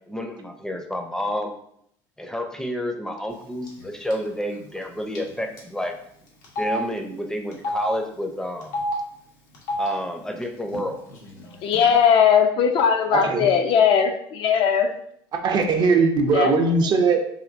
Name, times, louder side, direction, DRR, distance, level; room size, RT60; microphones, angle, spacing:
voice 1, 0.1-1.5 2.2-6.0 6.6-8.7 9.8-11.0, equal, 5° left, 4 dB, 0.5 m, -30 dB
Telephone, 3.7-3.8 4.1-4.3 5.1-5.3 5.6-5.7 6.4-6.8 7.5-7.8 8.6-8.9 9.5-9.9 10.7-10.8 11.1-11.8, left 1 dB, 85° left, 1.0 m, -28 dB
voice 2, 11.6-14.9 16.3-16.7, left 7 dB, 55° left, 6 dB, 0.4 m, -19 dB
voice 3, 13.1-13.5 15.3-17.3, right 4 dB, 45° right, 4 dB, 0.5 m, -20 dB
3.5 x 2.6 x 2.5 m, 0.69 s
supercardioid pair, 90°, 10 cm